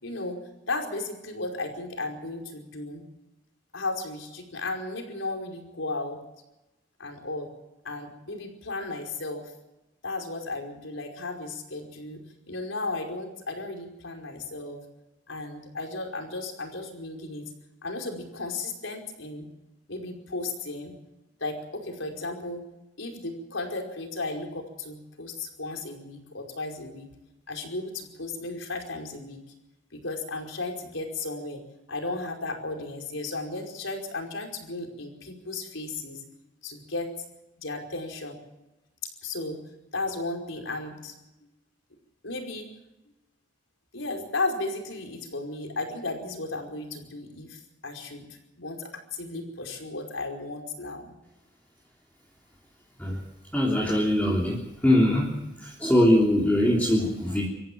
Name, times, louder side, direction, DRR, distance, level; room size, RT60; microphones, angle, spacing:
voice 1, 0.0-3.0 3.7-6.2 7.0-7.5 7.8-9.5 10.0-14.8 15.3-17.5 17.8-19.5 19.9-21.0 21.4-22.6 23.0-27.1 27.5-29.4 29.9-31.6 31.9-36.2 36.6-37.1 37.6-38.4 39.2-39.6 39.9-41.2 42.2-42.7 43.9-51.1, left 2 dB, 85° left, 3 dB, 5.1 m, -35 dB
voice 2, 53.5-55.3 55.6-57.5, left 1 dB, 10° left, -4 dB, 3.4 m, -22 dB
25.0 x 15.0 x 7.6 m, 0.97 s
head